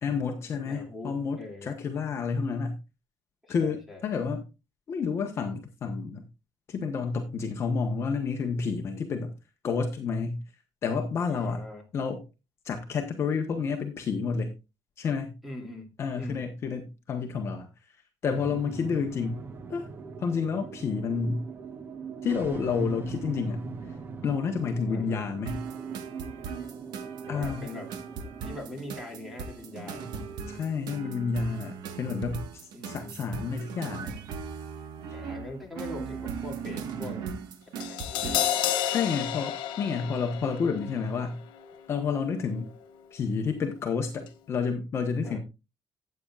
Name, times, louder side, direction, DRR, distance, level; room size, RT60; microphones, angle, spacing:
voice 1, 0.0-2.8 3.5-4.4 4.9-6.2 6.7-9.3 9.6-10.4 10.8-11.6 11.9-12.2 12.6-14.5 15.0-15.3 16.0-18.0 18.2-19.4 19.7-19.9 20.2-21.4 22.2-23.7 24.2-25.7 27.3-27.7 30.5-34.1 38.9-41.4 41.9-42.7 43.1-45.4, left 5 dB, 35° left, 4 dB, 1.1 m, -30 dB
voice 2, 0.6-1.7 3.4-4.0 11.3-11.9 15.4-16.4 24.9-25.2 26.5-26.7 27.3-27.9 28.4-30.1 32.7-33.2 35.1-37.3 37.8-38.5 39.9-40.1 45.2-45.4, left 2 dB, ahead, 1 dB, 2.6 m, -42 dB
sound 1, 18.3-32.9, right 5 dB, 30° right, 1.1 m, -42 dB
sound 2, 25.5-38.6, right 6 dB, 65° right, 1.5 m, -38 dB
Crash cymbal, 37.8-44.0 44.2-44.4, left 11 dB, 80° left, 1.4 m, -33 dB
13.5 x 8.7 x 2.4 m, 0.28 s
cardioid pair, 175°, 8 cm